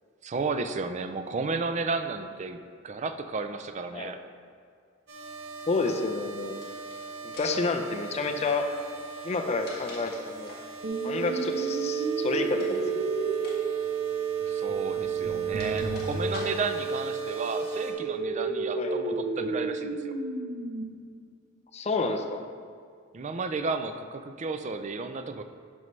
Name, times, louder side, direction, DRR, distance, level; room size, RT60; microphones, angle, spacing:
voice 1, 0.2-4.2 14.5-20.1 23.1-25.4, right 4 dB, 35° right, 8 dB, 0.4 m, -33 dB
sound 1, 5.1-17.9, right 3 dB, 90° right, 1.4 m, -42 dB
voice 2, 5.7-6.6 7.2-8.7 9.2-10.5 11.0-13.1 18.8-19.0 21.7-22.4, left 3 dB, 30° left, 4 dB, 0.5 m, -29 dB
sound 2, 6.5-6.9 7.3-7.7 9.2-10.7 12.5-12.8 13.3-13.6 13.8-14.0 14.9-16.9, left 2 dB, 50° left, 1.6 m, -45 dB
sound 3, 10.8-20.8, right 5 dB, 55° right, 0.9 m, -30 dB
11.0 x 5.4 x 3.2 m, 2.2 s
head